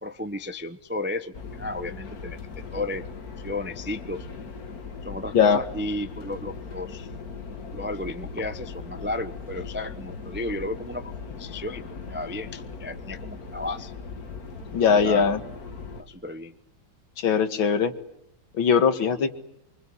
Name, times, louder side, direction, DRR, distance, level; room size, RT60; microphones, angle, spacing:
voice 1, 0.0-3.0 3.4-4.3 5.0-7.1 7.7-11.8 12.1-13.9 14.9-15.3 16.0-16.5, left 2 dB, 10° right, 10 dB, 0.5 m, -33 dB
sound 1, 1.3-16.0, left 4 dB, 45° left, 2.2 m, -39 dB
voice 2, 14.7-15.4 17.2-17.9 18.5-19.3, left 6 dB, 75° left, 10 dB, 2.4 m, -20 dB
25.0 x 24.5 x 9.9 m, 0.75 s
omnidirectional pair, 2.2 m